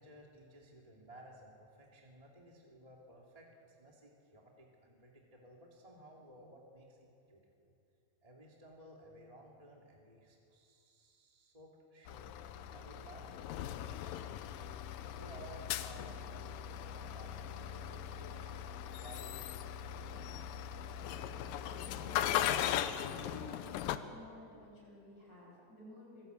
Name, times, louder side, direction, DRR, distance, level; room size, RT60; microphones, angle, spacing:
voice 1, 0.0-7.7 8.2-12.3 12.7-14.5 15.0-16.6 16.9-18.5 18.8-20.3, right 1 dB, 10° right, -2 dB, 2.0 m, -57 dB
sound 1, 12.1-24.0, left 10 dB, 80° left, 2.5 m, -39 dB
voice 2, 23.0-26.3, left 1 dB, 50° left, -3 dB, 7.9 m, -53 dB
25.5 x 17.0 x 8.2 m, 2.5 s
omnidirectional pair, 4.1 m